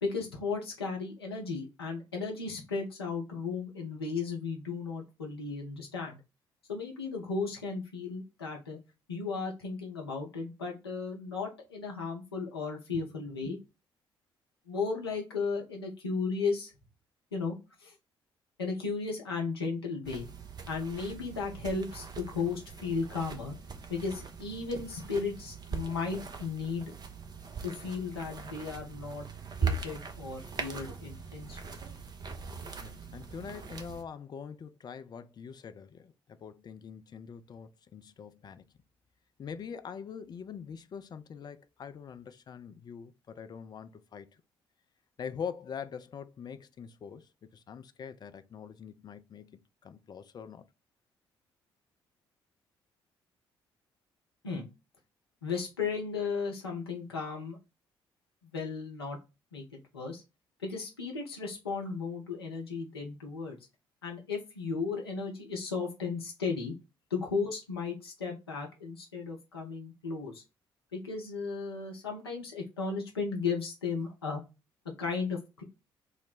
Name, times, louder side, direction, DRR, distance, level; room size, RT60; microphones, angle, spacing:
voice 1, 0.0-6.2 6.7-8.8 9.1-13.6 14.7-16.7 17.3-17.9 18.6-20.3 20.7-23.6 23.9-26.9 27.6-29.3 29.6-31.6 54.4-54.7 55.4-57.6 58.5-59.2 59.5-60.2 60.6-63.6 64.0-66.7 67.1-70.4 70.9-74.4 75.0-75.6, left 4 dB, 85° left, 0.6 m, -35 dB
sound 1, 20.0-34.0, right 5 dB, 30° right, 0.6 m, -40 dB
voice 2, 32.8-38.6 39.4-44.3 45.2-50.7, left 7 dB, 35° left, 0.4 m, -44 dB
3.2 x 2.1 x 3.8 m
figure-of-eight pair, 40°, 13 cm